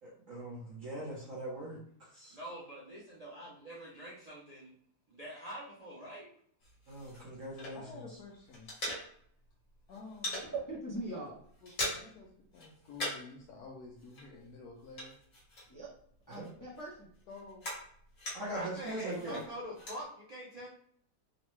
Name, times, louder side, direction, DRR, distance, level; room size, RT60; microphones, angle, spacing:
voice 1, 0.0-2.4 6.9-8.0 16.3-16.5 18.3-19.4, right 1 dB, 55° right, -7 dB, 1.1 m, -41 dB
voice 2, 2.3-4.7 5.1-6.3 18.5-20.7, equal, 80° right, -6 dB, 0.3 m, -45 dB
sound 1, 6.6-8.1 8.3-9.5 9.7-10.5 10.9-11.1 11.4-12.3 12.5-13.4 13.6-16.0 16.3-18.7 19.1-20.0, left 1 dB, 55° left, 1.5 m, -41 dB
voice 3, 7.7-8.7 9.9-10.4 11.1-11.2 11.6-15.2 17.3-17.7 19.2-19.5, left 4 dB, 70° left, -2 dB, 1.1 m, -50 dB
voice 4, 10.5-11.3 15.7-15.9 16.3-17.1, right 2 dB, 25° left, -6 dB, 0.4 m, -40 dB
3.9 x 2.1 x 3.0 m, 0.63 s
omnidirectional pair, 1.8 m